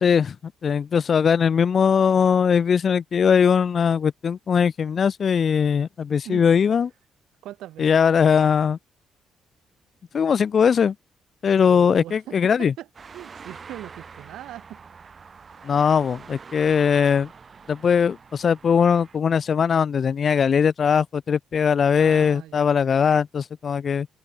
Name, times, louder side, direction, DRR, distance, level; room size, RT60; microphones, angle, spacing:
voice 1, 0.0-0.4 0.6-6.9 7.8-8.8 10.1-10.9 11.4-12.7 15.6-17.3 17.7-24.1, left 7 dB, 50° left, 0.3 m, -20 dB
voice 2, 7.4-7.9 11.6-12.9 13.1-14.8 21.9-22.9, right 13 dB, 85° right, 6.4 m, -40 dB
sound 1, 12.9-19.2, right 5 dB, 40° right, 2.8 m, -45 dB
cardioid pair, 90°, 0 cm